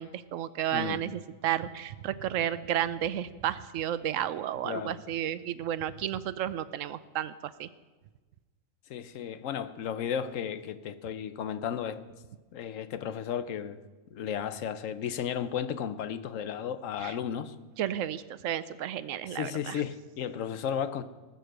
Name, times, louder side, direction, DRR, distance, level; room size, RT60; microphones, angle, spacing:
voice 1, 0.0-7.7 17.0-17.2 17.8-19.8, right 11 dB, 90° right, 1.0 m, -32 dB
voice 2, 0.7-1.0 4.6-5.0 8.9-12.0 12.5-13.8 14.1-17.5 19.3-21.0, left 8 dB, 85° left, 1.1 m, -34 dB
19.0 x 6.7 x 6.5 m
omnidirectional pair, 1.3 m